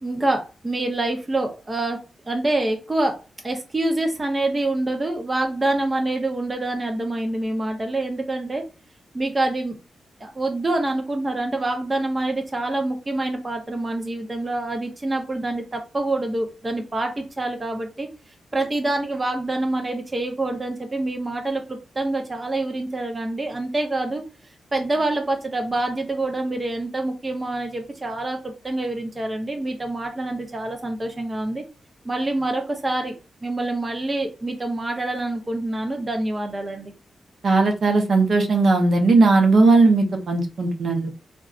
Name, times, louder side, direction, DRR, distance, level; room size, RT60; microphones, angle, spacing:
voice 1, 0.0-8.6 9.1-9.8 10.2-18.1 18.5-24.2 24.7-31.6 32.0-36.9, right 2 dB, 20° right, 3 dB, 0.5 m, -26 dB
voice 2, 37.4-41.1, right 3 dB, 55° right, 3 dB, 0.6 m, -17 dB
3.8 x 2.2 x 2.3 m, 0.30 s
wide cardioid pair, 135°, 0 cm